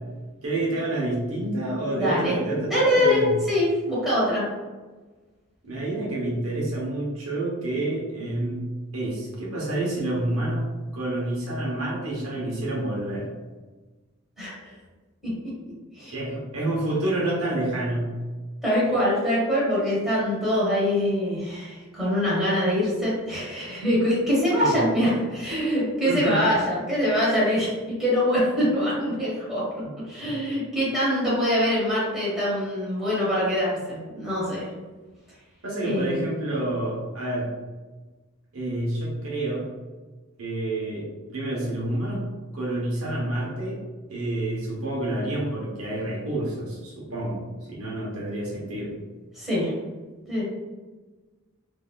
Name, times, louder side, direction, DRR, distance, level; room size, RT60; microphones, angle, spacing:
voice 1, 0.4-3.4 5.7-8.7 8.9-10.6 10.9-13.3 16.1-18.1 24.6-24.8 26.0-26.4 30.2-30.6 35.6-37.5 38.5-39.6 40.4-42.2 42.5-43.8 44.1-48.9, right 1 dB, 85° right, -4 dB, 1.0 m, -28 dB
voice 2, 1.9-2.4 2.7-4.4 14.4-14.7 15.2-15.3 16.0-16.1 18.6-29.6 30.1-34.7 35.8-36.3 49.3-49.7 50.3-50.4, equal, ahead, -9 dB, 1.5 m, -24 dB
3.8 x 2.8 x 2.4 m, 1.3 s
head